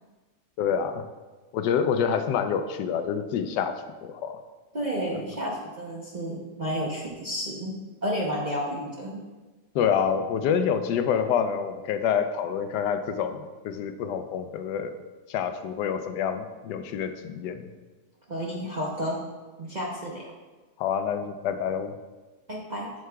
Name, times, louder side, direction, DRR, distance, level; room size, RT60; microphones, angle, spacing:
voice 1, 0.6-1.0 1.5-4.4 5.1-5.2 9.7-14.9 15.3-17.7 20.8-21.9, left 7 dB, 85° left, 9 dB, 1.2 m, -27 dB
voice 2, 4.7-7.7 8.0-9.2 18.3-19.2 19.6-20.2 22.5-22.9, equal, 40° right, -3 dB, 0.6 m, -31 dB
7.8 x 7.6 x 2.3 m, 1.3 s
omnidirectional pair, 1.8 m